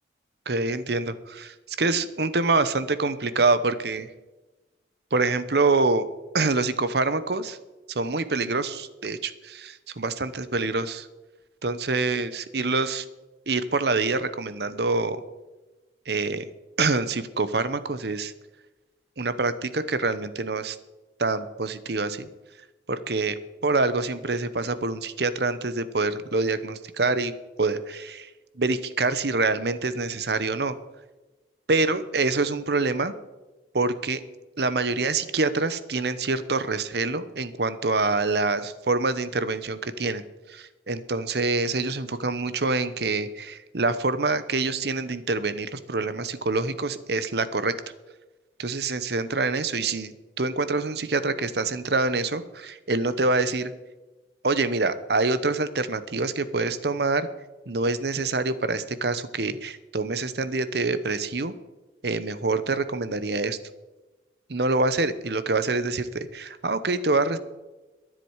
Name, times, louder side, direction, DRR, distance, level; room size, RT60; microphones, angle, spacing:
voice 1, 0.5-4.1 5.1-6.0 6.3-7.6 7.9-11.1 11.6-13.0 13.5-15.2 16.1-16.5 16.8-18.3 19.2-20.8 21.2-22.3 22.9-23.3 23.6-27.3 27.6-28.3 28.6-30.8 31.7-33.1 33.7-34.2 34.6-40.2 40.5-47.7 48.6-53.7 54.4-57.3 57.7-61.5 62.0-63.6 64.5-67.4, right 3 dB, 60° right, 13 dB, 0.9 m, -26 dB
23.0 x 7.7 x 4.8 m, 1.1 s
head